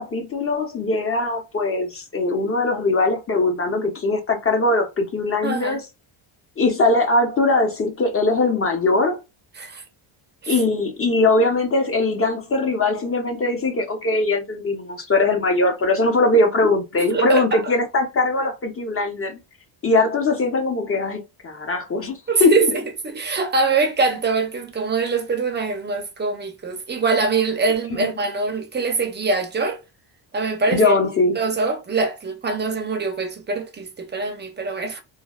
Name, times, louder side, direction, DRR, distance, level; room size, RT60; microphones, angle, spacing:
voice 1, 0.0-5.8 6.6-9.2 10.5-19.4 19.8-22.6 27.9-28.0 30.7-31.3, left 2 dB, 25° left, 0.8 m, -21 dB
voice 2, 5.4-5.8 9.6-9.8 10.4-10.5 17.0-17.7 22.3-29.8 30.3-30.9 31.4-35.0, right 4 dB, 20° right, 0.6 m, -23 dB
3.1 x 2.2 x 2.3 m
cardioid pair, 120°, 49 cm